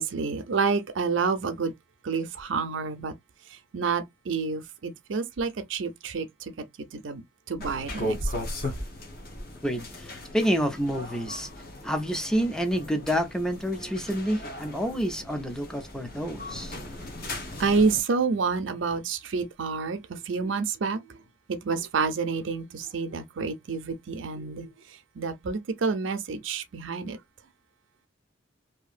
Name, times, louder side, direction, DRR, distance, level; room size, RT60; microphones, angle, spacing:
voice 1, 0.0-1.7 2.0-3.1 3.5-6.7 6.9-8.3 8.6-8.7 16.7-16.9 17.6-21.2 21.5-27.2, right 4 dB, 80° right, 0.6 m, -29 dB
sound 1, 7.6-18.0, left 1 dB, 50° left, 1.0 m, -37 dB
voice 2, 9.6-11.5 11.8-16.8, equal, 5° left, 0.4 m, -28 dB
2.8 x 2.6 x 2.4 m
head